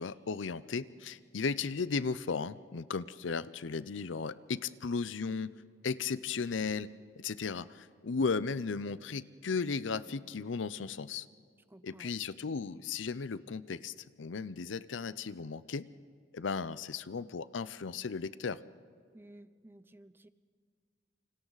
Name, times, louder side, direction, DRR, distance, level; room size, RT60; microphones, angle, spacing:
voice 1, 0.0-5.5 5.8-6.9 7.2-11.3 11.8-15.9 16.3-18.6, left 5 dB, 85° left, 17 dB, 0.6 m, -35 dB
voice 2, 11.7-12.1 19.1-20.3, right 1 dB, 10° right, 14 dB, 0.5 m, -55 dB
28.5 x 25.5 x 4.0 m, 2.1 s
head